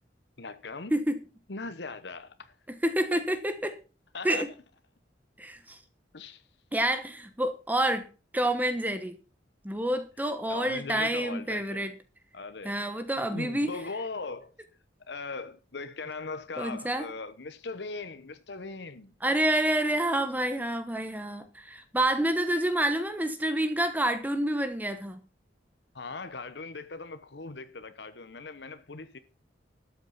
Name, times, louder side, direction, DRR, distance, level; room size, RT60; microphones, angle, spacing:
voice 1, 0.4-0.9 1.5-2.6 3.1-3.2 4.1-4.5 6.1-6.4 10.5-11.9 12.3-12.8 13.2-14.5 15.1-19.1 25.9-29.2, left 3 dB, 70° left, 1.0 m, -39 dB
voice 2, 2.8-3.7 4.2-4.5 5.4-5.8 6.7-8.1 8.3-9.1 9.6-11.9 12.6-13.7 16.6-17.1 19.2-25.2, right 1 dB, 10° right, 1.1 m, -28 dB
13.0 x 8.2 x 5.7 m
head